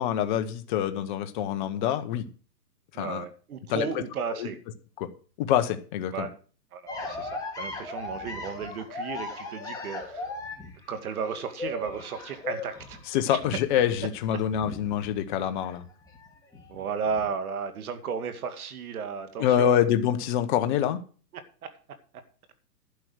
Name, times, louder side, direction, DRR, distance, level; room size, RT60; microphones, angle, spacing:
voice 1, 0.0-2.2 3.0-3.2 3.7-3.9 4.4-4.5 5.0-5.1 5.4-6.3 13.1-15.8 19.4-21.0, left 10 dB, 30° left, 0.9 m, -26 dB
voice 2, 2.9-4.6 6.1-6.3 6.7-10.3 10.9-13.0 13.3-13.4 16.7-19.9 21.3-21.4, right 6 dB, 60° right, 2.2 m, -34 dB
sound 1, 6.9-15.7 16.0-17.3, left 3 dB, 5° left, 2.2 m, -38 dB
11.5 x 6.2 x 7.8 m
hypercardioid pair, 145°, 50 cm